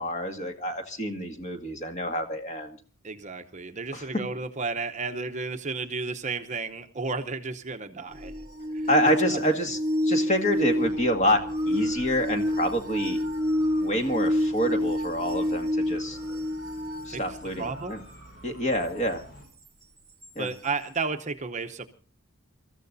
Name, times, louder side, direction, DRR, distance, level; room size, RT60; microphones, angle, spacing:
voice 1, 0.0-2.8 3.9-4.1 8.9-9.8 10.0-13.2 13.8-16.2 17.1-18.0 18.4-19.2 20.4-20.5, equal, 30° left, 4 dB, 2.0 m, -27 dB
voice 2, 3.0-8.3 8.7-9.4 17.1-18.0 20.4-21.9, right 4 dB, 35° right, 8 dB, 0.8 m, -33 dB
sound 1, 8.1-17.9 20.2-20.3, left 1 dB, 15° right, 1.2 m, -28 dB
sound 2, 10.5-19.5, equal, 60° left, 5.6 m, -49 dB
28.0 x 14.0 x 2.7 m, 0.38 s
head